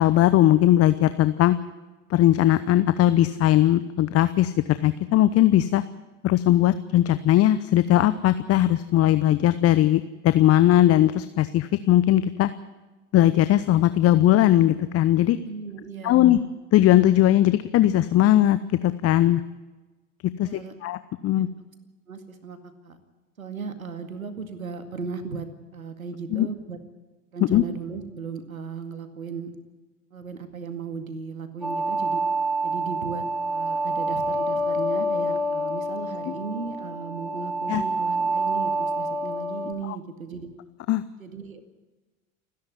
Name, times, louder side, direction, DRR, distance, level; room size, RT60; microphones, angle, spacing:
voice 1, 0.0-1.6 2.1-5.8 6.2-12.5 13.1-15.4 16.0-16.4 16.7-19.4 20.4-21.5 26.3-26.5 27.5-27.6 37.7-37.8 39.8-40.0 40.9-41.0, left 13 dB, 35° left, 14 dB, 0.9 m, -19 dB
voice 2, 15.4-16.3 20.4-20.7 21.3-21.5 22.1-23.0 23.4-25.5 25.7-26.8 27.3-29.5 30.1-32.2 32.6-40.5 41.2-41.6, right 5 dB, 90° right, 9 dB, 2.2 m, -36 dB
sound 1, 31.6-39.7, right 1 dB, ahead, 3.8 m, -27 dB
29.0 x 10.5 x 9.8 m, 1.2 s
hypercardioid pair, 80°, 41 cm